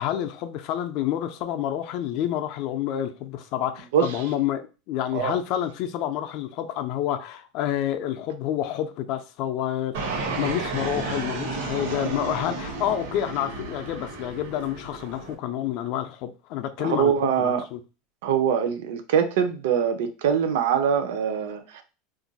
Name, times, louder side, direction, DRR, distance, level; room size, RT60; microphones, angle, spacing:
voice 1, 0.0-10.0 10.4-17.8, left 11 dB, 40° left, 0.4 m, -28 dB
voice 2, 3.9-4.2 5.1-5.4 16.8-17.6 18.2-21.8, right 8 dB, 70° right, 0.6 m, -23 dB
Fixed-wing aircraft airplane, 9.9-15.3, right 3 dB, 85° right, 1.1 m, -32 dB
2.5 x 2.3 x 3.9 m
supercardioid pair, 180°, 0 cm